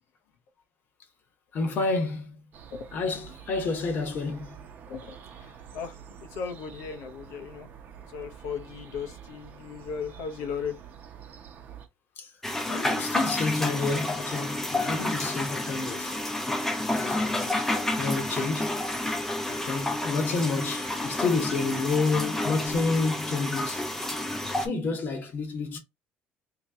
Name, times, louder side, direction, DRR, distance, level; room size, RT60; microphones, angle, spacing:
voice 1, 1.5-2.4 2.9-4.6 12.2-12.3 12.7-16.2 16.9-17.7 17.9-18.9 19.5-23.8 24.5-25.8, left 3 dB, 50° left, 1.1 m, -29 dB
sound 1, 2.5-11.9, right 8 dB, 45° right, 0.8 m, -47 dB
voice 2, 4.9-7.7 8.1-10.8, left 6 dB, 85° left, 0.9 m, -37 dB
sound 2, 12.4-24.7, left 1 dB, 5° left, 0.7 m, -30 dB
2.9 x 2.9 x 3.5 m
cardioid pair, 130°, 4 cm